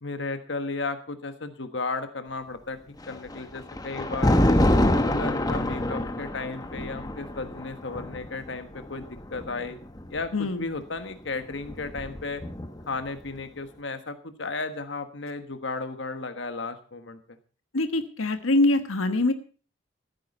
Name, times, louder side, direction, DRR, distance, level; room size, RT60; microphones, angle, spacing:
voice 1, 0.0-4.4 4.8-9.8 10.1-12.4 12.9-17.2, left 3 dB, 60° left, 9 dB, 1.3 m, -34 dB
Thunder, 3.0-10.2 11.2-13.0, left 1 dB, 20° left, 1.0 m, -26 dB
voice 2, 10.3-10.6 17.7-19.3, left 2 dB, 90° left, 9 dB, 1.2 m, -23 dB
15.5 x 9.4 x 5.3 m, 0.40 s
head